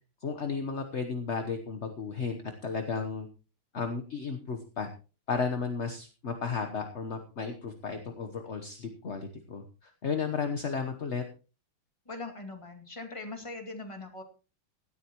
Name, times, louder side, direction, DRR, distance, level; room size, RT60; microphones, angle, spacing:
voice 1, 0.2-3.3 3.7-4.9 5.3-11.2, left 5 dB, 45° left, 6 dB, 1.0 m, -34 dB
voice 2, 12.1-14.2, left 2 dB, 15° left, 4 dB, 2.2 m, -41 dB
17.0 x 12.5 x 3.0 m, 0.34 s
omnidirectional pair, 2.4 m